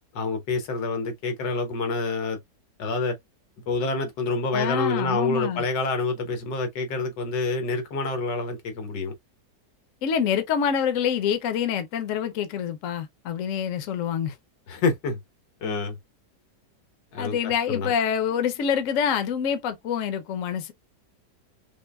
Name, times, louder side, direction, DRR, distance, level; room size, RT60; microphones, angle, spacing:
voice 1, 0.1-2.4 2.8-3.2 3.7-9.1 14.7-15.2 15.6-16.0 17.1-17.4 17.7-17.9, left 3 dB, 90° left, 1.7 m, -27 dB
voice 2, 4.5-5.6 10.0-14.3 17.2-20.7, left 8 dB, 60° left, 0.9 m, -26 dB
5.3 x 2.1 x 2.3 m
omnidirectional pair, 1.9 m